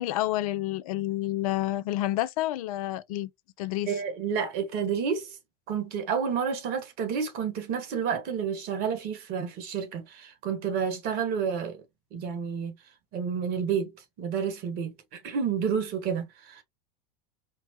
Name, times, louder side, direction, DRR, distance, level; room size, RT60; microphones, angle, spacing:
voice 1, 0.0-3.3 3.6-3.9, left 15 dB, 60° left, 0.4 m, -29 dB
voice 2, 3.9-5.4 5.7-11.8 12.1-12.7 13.1-13.9 14.2-16.6, right 6 dB, 50° right, 1.4 m, -30 dB
4.4 x 2.1 x 3.0 m
hypercardioid pair, 90°, 20 cm